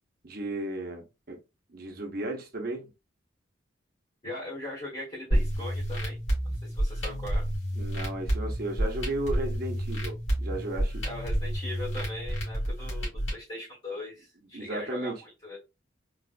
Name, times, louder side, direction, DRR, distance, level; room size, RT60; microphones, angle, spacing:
voice 1, 0.2-1.4 1.7-2.9 7.8-11.0 14.5-15.1, right 1 dB, 50° right, 0.8 m, -34 dB
voice 2, 4.2-6.2 6.6-7.4 11.0-15.6, left 1 dB, 30° left, 1.4 m, -40 dB
sound 1, 5.3-13.3, equal, 75° left, 2.0 m, -30 dB
4.0 x 2.4 x 2.4 m
head